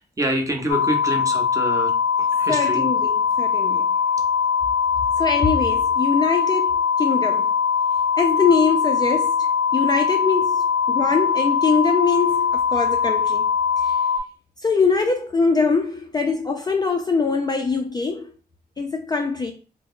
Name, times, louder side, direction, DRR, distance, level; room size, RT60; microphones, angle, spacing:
voice 1, 0.2-1.9 2.2-2.9, right 1 dB, 20° right, 0.6 m, -26 dB
sound 1, 0.7-14.2, left 6 dB, 85° left, 0.5 m, -21 dB
voice 2, 2.5-3.9 5.2-7.5 8.2-13.5 13.8-13.9 14.6-18.3 18.8-19.5, left 4 dB, 25° left, 0.3 m, -23 dB
2.2 x 2.0 x 3.6 m
cardioid pair, 95°, 17 cm